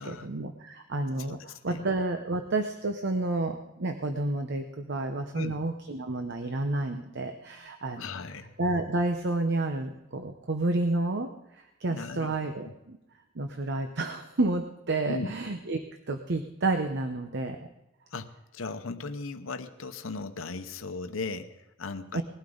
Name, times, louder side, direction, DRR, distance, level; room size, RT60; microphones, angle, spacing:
voice 1, 0.0-8.0 8.6-13.0 13.3-15.8 16.1-17.7 22.1-22.2, right 2 dB, 60° right, 7 dB, 0.8 m, -30 dB
voice 2, 8.0-8.5 11.9-12.4 12.6-12.7 15.1-15.3 18.1-22.2, left 3 dB, 85° left, 8 dB, 0.9 m, -37 dB
20.0 x 12.0 x 3.9 m, 0.92 s
head